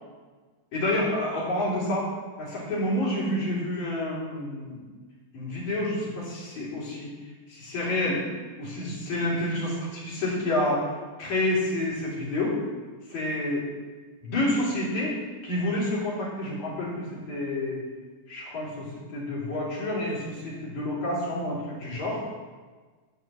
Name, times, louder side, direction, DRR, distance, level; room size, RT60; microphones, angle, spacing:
voice 1, 0.7-2.1 2.4-4.8 5.3-7.1 7.5-8.2 8.6-10.9 11.2-12.6 13.1-13.7 14.2-17.8 18.3-22.3, left 1 dB, 75° left, -6 dB, 4.4 m, -29 dB
12.5 x 4.6 x 7.4 m, 1.4 s
omnidirectional pair, 3.3 m